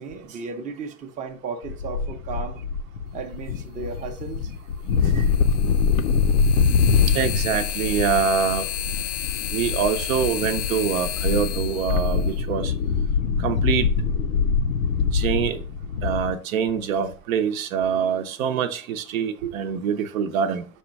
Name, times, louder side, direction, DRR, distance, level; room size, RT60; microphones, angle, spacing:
voice 1, 0.0-2.6 3.1-4.5, right 4 dB, 20° right, 0.5 m, -35 dB
sound 1, 1.6-16.3, left 5 dB, 90° left, 0.6 m, -24 dB
sound 2, 3.7-3.8 5.1-13.1, left 10 dB, 40° left, 0.4 m, -31 dB
voice 2, 7.1-8.7 9.5-12.7 13.4-13.9 15.1-15.6 16.0-20.7, right 7 dB, 80° right, 0.7 m, -25 dB
4.9 x 2.3 x 4.0 m
hypercardioid pair, 110°, 40 cm